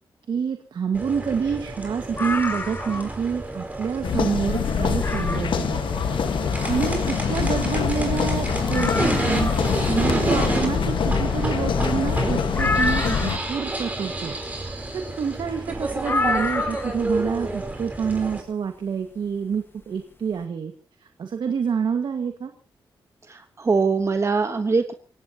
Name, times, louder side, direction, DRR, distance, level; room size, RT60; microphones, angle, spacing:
voice 1, 0.3-5.8 6.7-14.4 14.9-20.7 21.0-22.5, right 6 dB, 65° right, 6 dB, 1.7 m, -27 dB
sound 1, 0.9-18.4, right 2 dB, 20° right, 4.6 m, -30 dB
sound 2, 2.1-3.2 3.6-3.7 4.3-4.4 5.0-5.6 7.4-7.5 7.6-7.7 8.2-8.3 8.7-9.7 12.6-13.5 16.0-17.1 18.4-18.5, left 3 dB, 25° left, 1.5 m, -28 dB
sound 3, 4.0-13.4, left 6 dB, 75° left, 1.5 m, -24 dB
voice 2, 23.3-24.9, right 4 dB, 35° right, 8 dB, 1.1 m, -22 dB
29.5 x 17.0 x 2.9 m, 0.38 s
cardioid pair, 100°, 8 cm